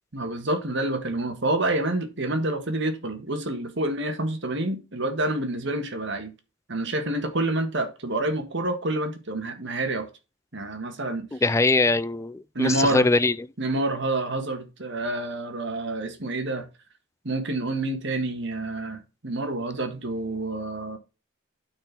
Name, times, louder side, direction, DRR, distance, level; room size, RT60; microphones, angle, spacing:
voice 1, 0.1-6.3 6.7-10.1 10.5-11.3 12.5-13.1 13.6-16.6 17.2-21.0, right 2 dB, 65° right, 1.7 m, -28 dB
voice 2, 11.3-13.4, left 3 dB, 15° left, 0.4 m, -22 dB
8.9 x 4.5 x 5.9 m
head